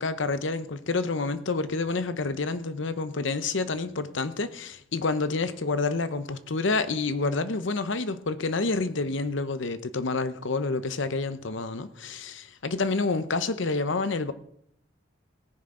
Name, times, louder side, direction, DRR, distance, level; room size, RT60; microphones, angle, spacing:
voice 1, 0.0-14.3, left 3 dB, 70° left, 0.8 m, -28 dB
17.5 x 10.0 x 3.8 m
head